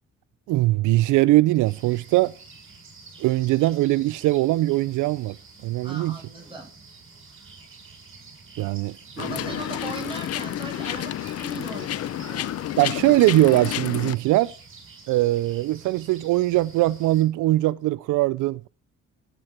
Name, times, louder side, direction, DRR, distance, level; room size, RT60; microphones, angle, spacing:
voice 1, 0.5-2.3 3.2-5.4 5.6-6.2 8.6-9.0 12.8-14.5 15.1-18.7, right 17 dB, 85° right, 0.4 m, -21 dB
sound 1, 1.6-17.2, right 4 dB, 45° right, 5.7 m, -48 dB
voice 2, 5.8-6.7 9.2-12.6, right 2 dB, 15° right, 8.0 m, -38 dB
sound 2, 9.2-14.1, left 12 dB, 55° left, 0.5 m, -30 dB
14.5 x 8.2 x 4.4 m
cardioid pair, 90°, 30 cm